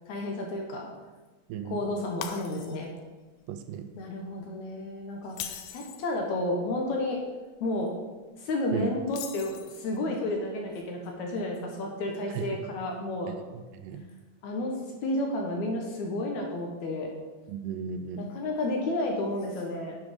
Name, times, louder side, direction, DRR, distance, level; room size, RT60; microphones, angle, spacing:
voice 1, 0.1-0.9 1.6-2.9 4.0-7.2 7.6-7.9 8.4-13.3 14.4-17.1 18.2-20.0, left 1 dB, 65° left, 1 dB, 2.2 m, -31 dB
voice 2, 1.5-1.8 3.5-3.9 8.7-8.9 12.4-12.5 13.3-13.4 13.7-14.0 17.5-18.3, right 8 dB, 80° right, 8 dB, 2.2 m, -35 dB
Shatter, 2.2-3.0 3.4-3.6 5.2-6.1 9.1-10.0, left 10 dB, 80° left, 1.8 m, -40 dB
9.6 x 5.2 x 5.2 m, 1.2 s
omnidirectional pair, 4.0 m